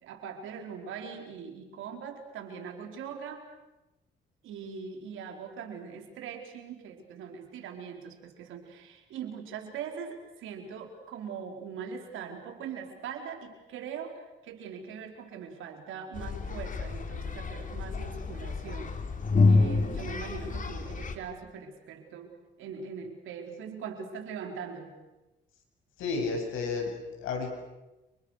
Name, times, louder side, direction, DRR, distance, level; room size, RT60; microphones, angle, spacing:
voice 1, 0.0-3.5 4.4-19.0 19.4-24.9, right 6 dB, 85° right, 3 dB, 4.8 m, -41 dB
sound 1, 16.2-21.2, left 3 dB, 40° left, 3.9 m, -28 dB
voice 2, 26.0-27.5, left 4 dB, 90° left, 3 dB, 7.7 m, -32 dB
30.0 x 29.0 x 6.7 m, 1.0 s
cardioid pair, 90°, 20 cm